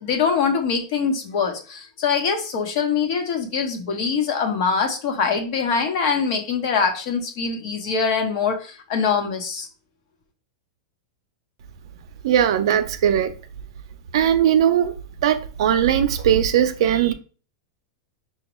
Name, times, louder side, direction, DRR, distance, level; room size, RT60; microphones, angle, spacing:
voice 1, 0.0-9.7, left 5 dB, 50° left, 1.0 m, -23 dB
voice 2, 12.2-13.3 14.1-14.9 15.2-17.1, right 10 dB, 65° right, 0.5 m, -19 dB
6.1 x 2.3 x 3.0 m
supercardioid pair, 165°, 3 cm